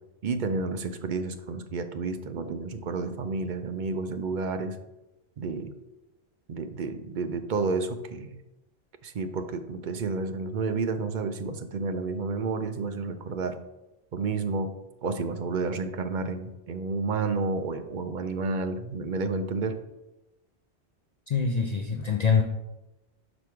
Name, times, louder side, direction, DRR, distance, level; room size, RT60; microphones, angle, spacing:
voice 1, 0.2-4.8 5.4-5.7 6.5-8.4 9.0-13.6 14.1-14.7 15.0-19.8, right 4 dB, 55° right, 8 dB, 0.6 m, -30 dB
voice 2, 21.3-22.4, left 6 dB, 50° left, 3 dB, 0.6 m, -24 dB
5.1 x 4.7 x 5.9 m, 0.97 s
omnidirectional pair, 1.1 m